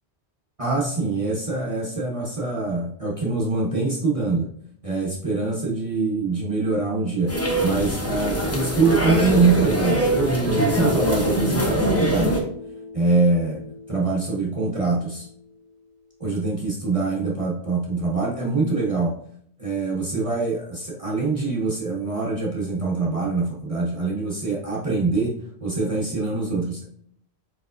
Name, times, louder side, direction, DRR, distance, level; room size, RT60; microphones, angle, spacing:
voice 1, 0.6-4.5 4.8-12.4 12.9-13.6 13.9-15.3 16.2-19.1 19.6-26.8, right 3 dB, 35° right, -4 dB, 0.7 m, -24 dB
sound 1, 7.3-12.4, right 1 dB, 15° left, 0.6 m, -23 dB
Guitar, 10.5-15.3, left 1 dB, 80° right, 0.9 m, -33 dB
4.5 x 4.3 x 2.5 m, 0.66 s
omnidirectional pair, 1.1 m